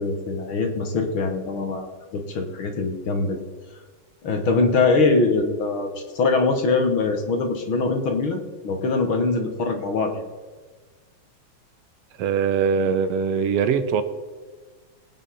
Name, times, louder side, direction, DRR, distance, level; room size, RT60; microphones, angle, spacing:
voice 1, 0.0-3.4 4.2-10.2, left 3 dB, 55° left, 5 dB, 1.7 m, -23 dB
voice 2, 12.2-14.0, right 6 dB, 70° right, 10 dB, 1.6 m, -22 dB
22.0 x 8.8 x 4.2 m, 1.4 s
omnidirectional pair, 3.4 m